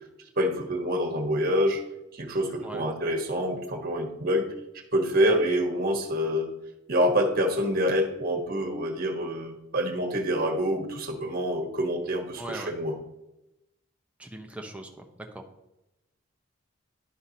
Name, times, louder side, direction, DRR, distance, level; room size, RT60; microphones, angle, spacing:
voice 1, 0.4-1.8 2.1-4.5 4.9-6.5 6.9-12.9, equal, 50° right, 4 dB, 1.3 m, -26 dB
voice 2, 12.4-12.7 14.2-15.0 15.3-15.4, right 1 dB, 5° right, 3 dB, 0.8 m, -39 dB
11.0 x 5.6 x 2.8 m, 0.92 s
head